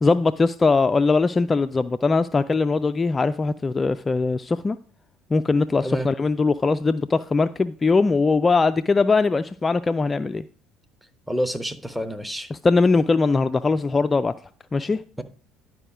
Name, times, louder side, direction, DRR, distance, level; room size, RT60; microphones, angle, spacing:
voice 1, 0.0-4.8 5.3-10.4 12.5-14.3 14.7-15.0, left 4 dB, 25° left, 0.4 m, -21 dB
voice 2, 11.3-12.5, equal, 5° right, 1.0 m, -28 dB
11.0 x 4.9 x 4.9 m
figure-of-eight pair, 60°, 0 cm